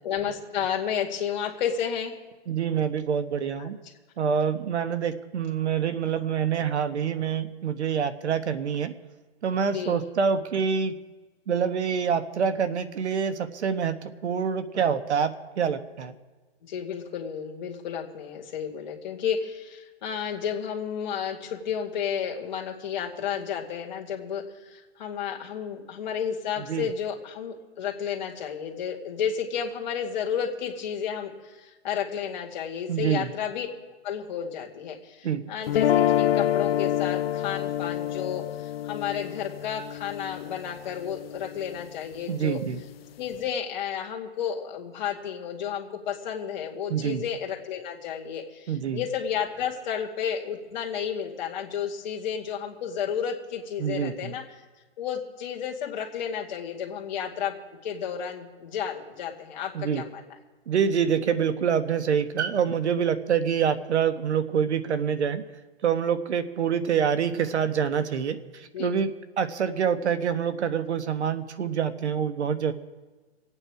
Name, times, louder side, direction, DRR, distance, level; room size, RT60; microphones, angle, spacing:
voice 1, 0.0-2.2 3.6-3.7 9.7-10.0 16.6-33.7 34.0-42.6 43.2-54.4 55.0-57.5 57.8-60.2 68.7-68.9, left 8 dB, 40° left, 0 dB, 2.1 m, -32 dB
voice 2, 2.5-3.8 4.2-8.9 9.4-10.9 11.5-14.0 14.2-16.1 26.7-26.9 32.9-33.3 35.2-35.4 42.3-42.8 46.9-47.2 48.7-49.0 53.8-54.3 59.7-60.0 60.7-65.4 65.8-69.1 69.4-72.7, right 7 dB, 85° right, 11 dB, 1.3 m, -26 dB
sound 1, 35.7-41.8, left 11 dB, 60° left, 0.6 m, -27 dB
25.5 x 8.9 x 4.8 m, 1.3 s
hypercardioid pair, 170°, 33 cm